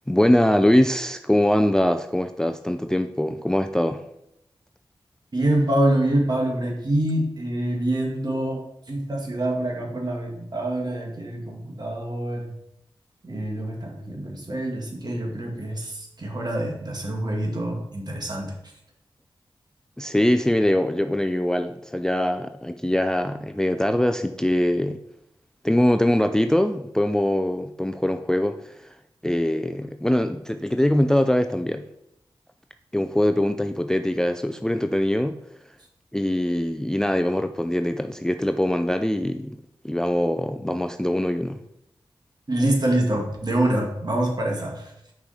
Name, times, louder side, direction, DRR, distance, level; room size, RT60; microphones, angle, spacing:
voice 1, 0.1-4.0 20.0-25.0 25.6-28.9 29.2-31.9 32.9-35.4 36.1-39.6 39.8-41.6, left 1 dB, 5° left, 8 dB, 0.4 m, -22 dB
voice 2, 5.3-12.5 13.2-18.5 42.5-44.9, right 1 dB, 50° right, 0 dB, 1.8 m, -25 dB
5.9 x 4.9 x 4.2 m, 0.79 s
cardioid pair, 50°, 9 cm